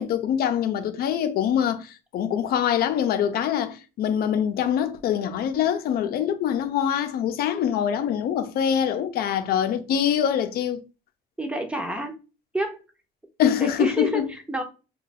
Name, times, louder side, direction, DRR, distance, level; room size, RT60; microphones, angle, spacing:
voice 1, 0.0-10.8 13.4-14.3, left 9 dB, 65° left, 0.6 m, -24 dB
voice 2, 11.4-12.1 12.5-12.8 13.6-14.6, right 1 dB, 5° right, 0.7 m, -28 dB
2.6 x 2.3 x 4.1 m
cardioid pair, 110°, 17 cm